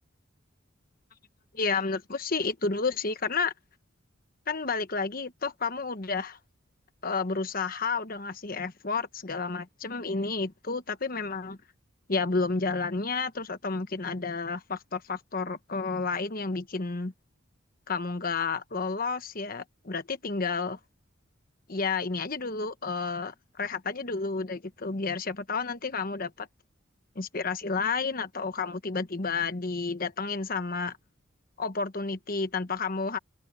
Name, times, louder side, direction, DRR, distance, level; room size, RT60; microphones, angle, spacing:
voice 1, 1.5-3.5 4.5-6.4 7.0-11.6 12.1-17.1 17.9-20.8 21.7-26.5 27.1-31.0 31.6-33.2, left 4 dB, 45° left, 1.2 m, -31 dB
head